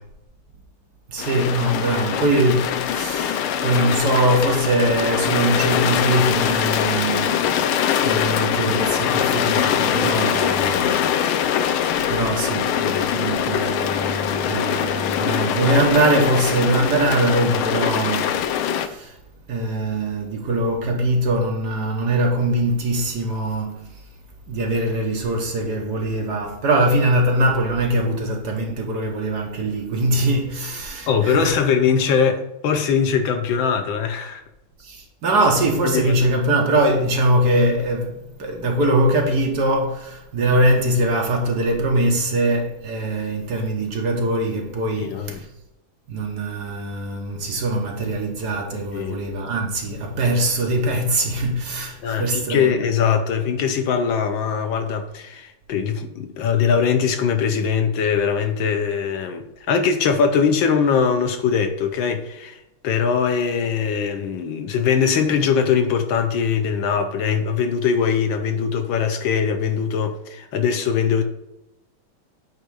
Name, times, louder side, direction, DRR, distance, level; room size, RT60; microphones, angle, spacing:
voice 1, 1.1-7.7 8.0-11.0 11.5-11.7 12.0-19.1 19.5-23.9 24.5-31.6 34.8-45.5 46.1-53.0, right 1 dB, 60° right, 1.3 m, -22 dB
sound 1, 1.2-18.9, left 9 dB, 90° left, 1.5 m, -22 dB
voice 2, 31.1-34.4 35.8-36.2 45.0-45.4 48.9-49.2 52.0-71.2, left 6 dB, 75° left, 1.4 m, -21 dB
9.1 x 3.1 x 4.8 m
omnidirectional pair, 2.3 m